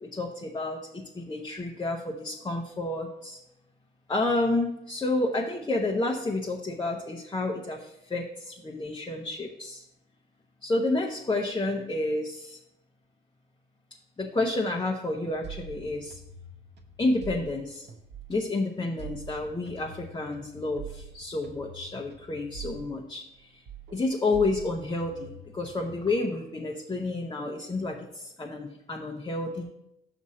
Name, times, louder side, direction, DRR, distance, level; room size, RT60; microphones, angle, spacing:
voice 1, 0.0-3.4 4.1-9.8 10.6-12.6 14.2-16.2 17.0-17.9 18.3-23.6 23.9-29.7, left 2 dB, 20° left, 0 dB, 0.7 m, -30 dB
sound 1, 15.4-18.5 19.0-23.4 23.7-26.1, right 5 dB, 60° right, 0.8 m, -45 dB
6.0 x 4.2 x 6.2 m, 0.85 s
cardioid pair, 90°, 20 cm